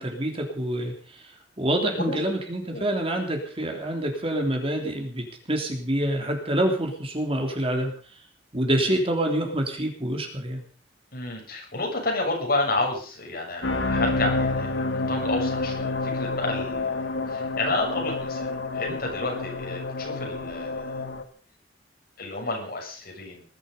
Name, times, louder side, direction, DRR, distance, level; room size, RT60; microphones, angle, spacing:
voice 1, 0.0-7.9 8.5-10.6, right 1 dB, 30° right, 3 dB, 3.3 m, -27 dB
voice 2, 11.1-17.0 17.3-20.9 22.2-23.4, left 2 dB, 55° left, 0 dB, 7.2 m, -30 dB
sound 1, 13.6-21.2, left 3 dB, 90° left, 1.9 m, -28 dB
20.5 x 12.0 x 5.5 m, 0.42 s
head